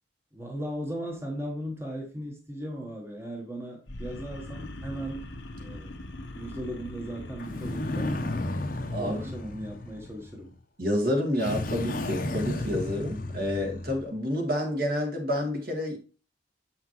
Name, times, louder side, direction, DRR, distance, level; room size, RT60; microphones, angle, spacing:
voice 1, 0.3-5.3 5.6-8.2 9.0-10.5, equal, 15° right, 1.1 m, -37 dB
sound 1, 3.9-10.1, left 1 dB, 70° left, 1.0 m, -42 dB
sound 2, 7.4-10.5 11.4-14.1, left 2 dB, 50° left, 0.8 m, -33 dB
voice 2, 8.9-9.2 10.8-16.0, left 1 dB, 50° right, 1.8 m, -29 dB
7.3 x 5.7 x 3.0 m
head